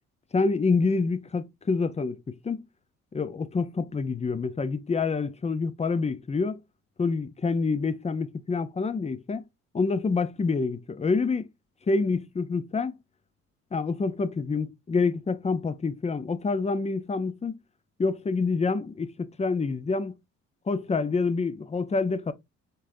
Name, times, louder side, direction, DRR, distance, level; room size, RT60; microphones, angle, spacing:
voice 1, 0.3-2.6 3.1-6.6 7.0-9.5 9.7-11.5 11.9-13.0 13.7-17.6 18.0-20.2 20.7-22.3, left 4 dB, 20° left, 0.6 m, -27 dB
5.5 x 3.7 x 2.6 m
cardioid pair, 90°, 30 cm